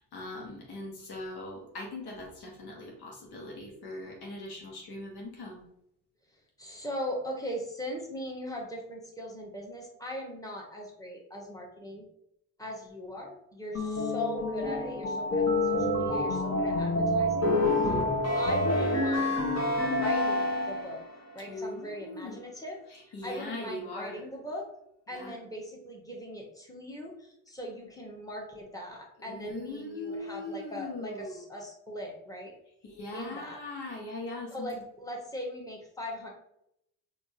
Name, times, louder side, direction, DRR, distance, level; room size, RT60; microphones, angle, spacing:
voice 1, 0.0-5.6 17.6-18.0 21.5-22.4 22.8-24.2 25.1-25.4 29.2-31.4 32.8-34.7, left 2 dB, 65° left, -2 dB, 1.3 m, -40 dB
voice 2, 6.6-12.1 12.6-17.6 18.3-19.4 19.9-21.0 21.3-22.8 23.1-24.6 25.1-32.5 33.1-33.6 34.5-36.3, left 1 dB, 10° left, -1 dB, 1.4 m, -39 dB
sound 1, 13.7-21.0, left 1 dB, 40° left, 1.4 m, -27 dB
4.5 x 2.8 x 2.8 m, 0.77 s
hypercardioid pair, 45°, 41 cm